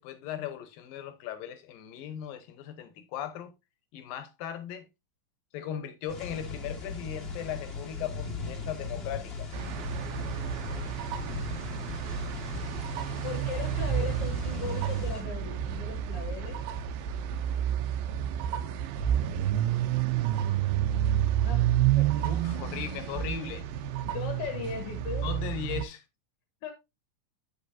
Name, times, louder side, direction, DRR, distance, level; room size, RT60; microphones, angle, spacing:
voice 1, 0.0-3.5 3.9-4.9 5.5-9.5 22.3-23.7 25.2-26.0, left 9 dB, 80° left, 2.7 m, -38 dB
sound 1, 6.1-15.2, left 4 dB, 30° left, 1.1 m, -38 dB
sound 2, 9.5-25.8, right 11 dB, 80° right, 2.5 m, -30 dB
voice 2, 13.2-16.6 21.4-21.7 22.0-22.3 24.0-25.3 26.6-26.7, left 8 dB, 55° left, 1.9 m, -38 dB
8.4 x 8.3 x 2.7 m
omnidirectional pair, 4.1 m